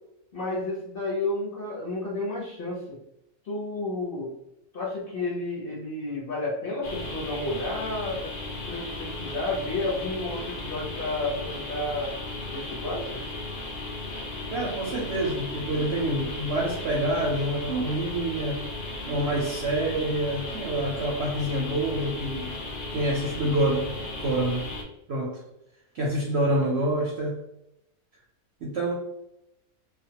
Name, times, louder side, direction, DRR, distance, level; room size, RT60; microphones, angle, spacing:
voice 1, 0.3-3.0 3.4-4.3 4.7-8.3 8.7-12.1 12.5-13.2, left 2 dB, 50° left, -5 dB, 0.7 m, -31 dB
sound 1, 6.8-24.8, left 2 dB, 85° left, 0.4 m, -36 dB
voice 2, 14.5-18.7 19.1-22.6 22.9-23.9 24.2-24.7 25.1-25.4 25.9-27.4 28.6-28.9, right 1 dB, 65° right, -3 dB, 0.7 m, -27 dB
2.4 x 2.2 x 2.7 m, 0.83 s
omnidirectional pair, 1.6 m